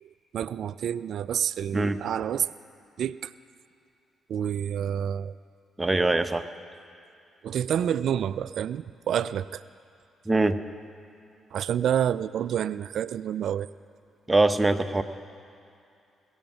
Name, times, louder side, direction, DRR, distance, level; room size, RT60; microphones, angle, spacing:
voice 1, 0.0-2.5 3.0-3.3 4.3-5.3 7.4-9.6 11.5-13.7, right 9 dB, 65° right, 17 dB, 0.3 m, -28 dB
voice 2, 5.8-6.5 10.3-10.7 14.3-15.0, right 2 dB, 20° right, 10 dB, 0.8 m, -23 dB
20.5 x 7.2 x 7.2 m, 2.6 s
hypercardioid pair, 45°, 0 cm